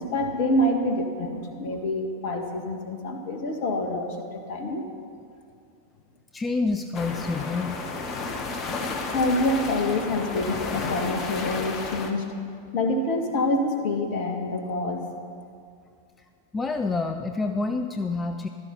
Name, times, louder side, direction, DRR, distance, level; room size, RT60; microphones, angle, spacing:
voice 1, 0.0-4.8 8.9-12.2 12.7-15.0, left 1 dB, 50° left, 4 dB, 1.9 m, -26 dB
voice 2, 6.3-7.8 16.5-18.5, left 3 dB, 15° left, 6 dB, 0.6 m, -27 dB
sound 1, 6.9-12.1, left 3 dB, 35° left, 1.5 m, -32 dB
15.5 x 12.5 x 5.7 m, 2.4 s
figure-of-eight pair, 90°, 0 cm